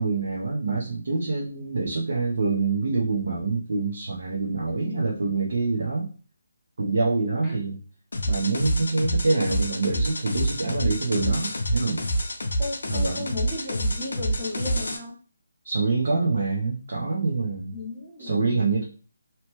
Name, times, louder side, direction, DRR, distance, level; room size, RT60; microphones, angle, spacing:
voice 1, 0.0-6.1 6.8-7.8 8.3-12.0 12.9-13.3 15.6-17.7 18.2-18.8, right 3 dB, 50° right, -4 dB, 0.7 m, -26 dB
voice 2, 4.7-5.2 7.4-7.5 12.6-15.1 17.7-18.7, left 2 dB, ahead, -9 dB, 0.7 m, -35 dB
sound 1, 8.1-15.0, equal, 75° left, 0.6 m, -27 dB
2.8 x 2.2 x 3.0 m, 0.39 s
hypercardioid pair, 180°, 0 cm